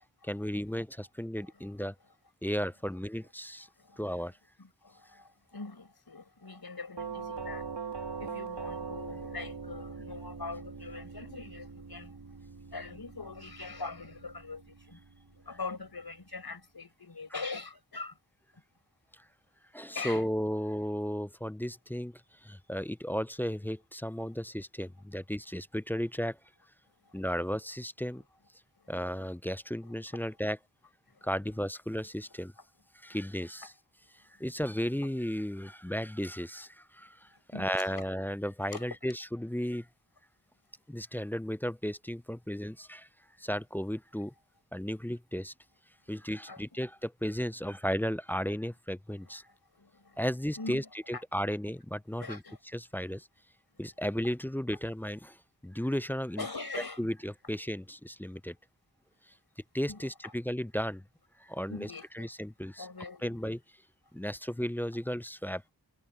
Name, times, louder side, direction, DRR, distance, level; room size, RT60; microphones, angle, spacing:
voice 1, 0.2-1.9 2.4-3.7 4.0-4.4 19.1-19.2 19.7-26.4 27.1-28.2 28.9-30.6 31.2-32.5 32.9-33.7 34.1-37.3 37.5-39.9 40.9-43.1 43.4-44.3 44.7-45.5 46.1-49.4 50.2-52.4 52.7-53.3 53.8-56.4 57.0-58.6 59.7-61.0 61.4-62.9 63.2-63.6 64.1-65.6, equal, 5° left, 0.3 m, -34 dB
voice 2, 1.4-1.7 3.8-4.0 4.6-7.7 8.2-12.2 12.7-15.0 15.5-18.2 19.9-20.2 27.0-27.1 29.1-29.3 30.1-30.2 31.2-31.3 37.3-38.1 38.7-38.9 46.5-46.6 49.2-50.2 50.6-51.2 52.2-52.6 56.4-57.1 59.9-60.3 61.7-62.3 62.8-63.4, left 3 dB, 65° left, 4.7 m, -43 dB
Doorbell, 7.0-15.8, right 5 dB, 80° right, 2.5 m, -42 dB
wide cardioid pair, 45°, 40 cm